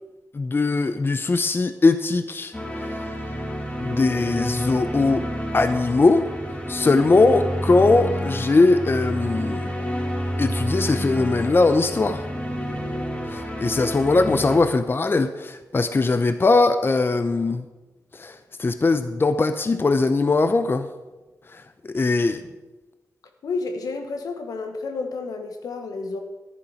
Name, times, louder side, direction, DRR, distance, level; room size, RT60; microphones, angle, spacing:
voice 1, 0.3-2.5 3.8-6.3 6.7-9.7 10.4-12.2 13.3-17.7 18.1-20.9 21.5-22.4, left 3 dB, 35° left, 10 dB, 0.7 m, -20 dB
sound 1, 2.5-14.6, equal, 20° left, 2.2 m, -29 dB
voice 2, 23.4-26.2, left 3 dB, 85° left, 6 dB, 1.3 m, -30 dB
10.5 x 10.5 x 5.1 m, 1.1 s
cardioid pair, 60°, 6 cm